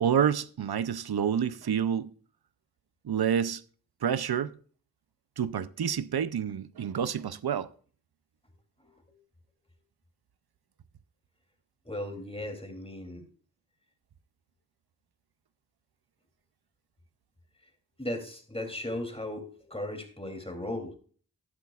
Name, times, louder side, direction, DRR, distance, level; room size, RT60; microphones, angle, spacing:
voice 1, 0.0-2.1 3.0-3.6 4.0-4.6 5.4-7.7, right 8 dB, 90° right, 0.5 m, -28 dB
voice 2, 8.8-9.2 11.8-13.3 18.0-20.9, left 1 dB, 15° left, 2.8 m, -37 dB
12.0 x 12.0 x 2.4 m
wide cardioid pair, 40°, 37 cm